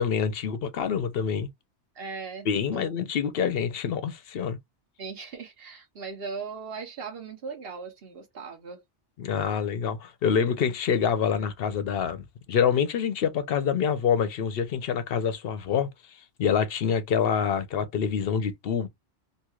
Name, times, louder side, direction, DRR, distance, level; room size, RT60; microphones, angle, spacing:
voice 1, 0.0-1.5 2.5-4.6 9.2-18.9, left 7 dB, 60° left, 0.7 m, -26 dB
voice 2, 1.9-2.9 5.0-8.8, right 4 dB, 55° right, 1.2 m, -38 dB
2.9 x 2.7 x 2.3 m
omnidirectional pair, 1.2 m